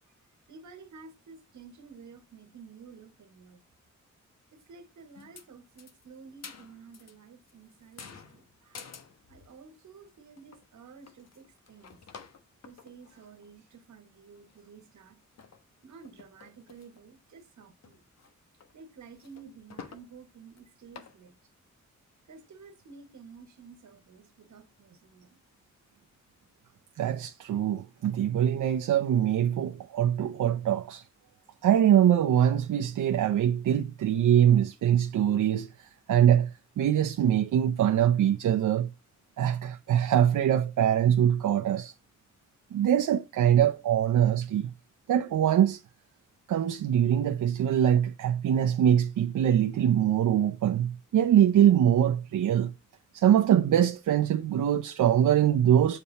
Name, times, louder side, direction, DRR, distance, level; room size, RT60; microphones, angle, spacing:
voice 1, 0.5-3.6 4.5-8.9 9.3-12.0 12.6-15.2 15.8-18.0 18.7-21.3 22.3-25.4, right 5 dB, 65° right, 2.0 m, -51 dB
sound 1, 5.1-5.5 5.8-7.2 7.5-9.6 10.1-10.2 10.4-10.7 11.1-13.5 14.0-14.1 14.4-14.8 15.3-15.6 16.0-17.0 17.3-17.4 17.8-18.3 18.6-18.7 19.0-20.1 20.5-20.6 20.9-21.2, left 6 dB, 55° left, 1.3 m, -49 dB
voice 2, 27.0-31.0 31.6-38.9 39.4-41.9 42.7-44.7 45.1-45.8 46.5-52.7 53.1-56.0, right 10 dB, 85° right, 0.7 m, -23 dB
7.5 x 4.4 x 4.1 m
wide cardioid pair, 155°, 31 cm